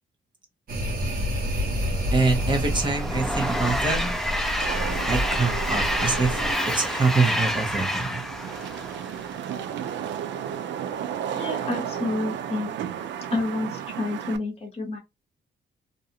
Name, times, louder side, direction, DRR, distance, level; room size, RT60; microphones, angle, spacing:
sound 1, 0.7-6.5, equal, 50° right, 1.1 m, -29 dB
Train, 2.1-9.6, equal, ahead, 0.4 m, -29 dB
voice 1, 2.1-4.1 5.1-6.4 6.7-8.2, right 3 dB, 25° right, 0.8 m, -25 dB
Wind / Rain, 2.9-14.4, right 9 dB, 80° right, 0.4 m, -34 dB
voice 2, 11.3-12.7 13.3-15.0, left 2 dB, 35° left, 1.0 m, -29 dB
2.6 x 2.3 x 2.7 m
wide cardioid pair, 155°, 19 cm